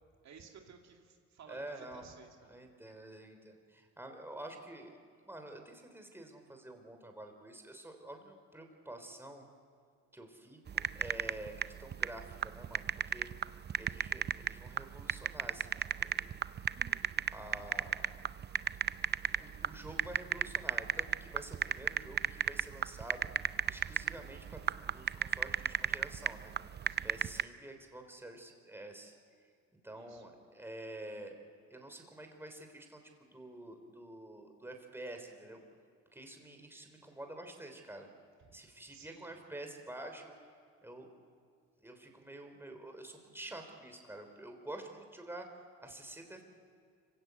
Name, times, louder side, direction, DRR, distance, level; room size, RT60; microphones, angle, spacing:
voice 1, 0.2-2.3 26.9-27.1 29.9-30.2 38.5-38.6 38.9-39.3, right 6 dB, 65° right, 2 dB, 2.3 m, -56 dB
voice 2, 1.5-2.0 2.5-5.0 5.2-9.5 10.1-13.3 13.8-16.3 17.3-18.3 19.3-23.3 23.7-26.5 27.0-29.1 29.8-31.3 31.7-35.6 36.1-38.1 38.5-40.3 40.8-41.1 41.8-45.5 45.8-46.4, right 1 dB, 10° right, 4 dB, 3.4 m, -48 dB
sound 1, 10.7-27.4, right 8 dB, 35° right, 0.5 m, -34 dB
25.5 x 16.0 x 8.2 m, 2.3 s
cardioid pair, 90°, 30 cm